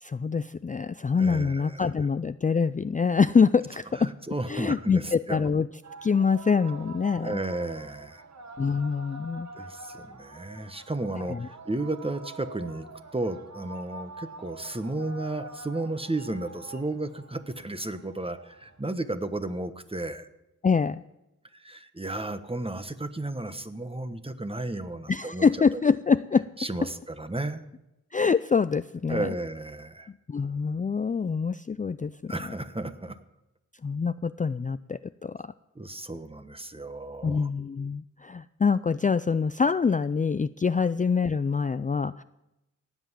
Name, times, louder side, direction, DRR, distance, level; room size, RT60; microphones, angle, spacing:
voice 1, 0.0-4.1 4.5-5.7 6.0-7.4 8.6-9.5 11.2-11.5 20.6-21.0 25.1-26.5 28.1-29.3 30.3-32.4 33.8-35.5 37.2-42.2, left 5 dB, 25° left, 14 dB, 0.4 m, -25 dB
voice 2, 1.2-1.8 3.9-5.4 7.2-8.2 9.5-12.9 13.1-20.3 21.5-25.5 25.7-25.9 26.6-27.6 29.1-30.1 32.3-33.2 35.7-37.5, right 2 dB, 20° right, 10 dB, 1.2 m, -33 dB
sound 1, 5.8-18.8, right 3 dB, 65° right, 1.5 m, -45 dB
18.0 x 8.1 x 7.4 m, 0.94 s
cardioid pair, 45°, 30 cm